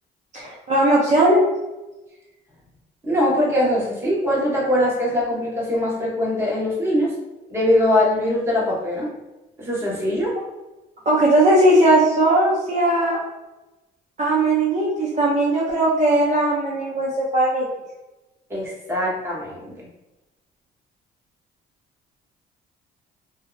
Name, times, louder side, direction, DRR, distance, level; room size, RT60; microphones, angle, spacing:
voice 1, 0.3-1.4 11.1-13.2 14.2-17.7, right 1 dB, 40° right, -5 dB, 0.6 m, -18 dB
voice 2, 3.0-7.1 7.5-9.1 9.6-10.3 18.5-19.9, left 1 dB, 15° right, -6 dB, 1.1 m, -22 dB
2.6 x 2.0 x 2.4 m, 1.0 s
cardioid pair, 95°, 19 cm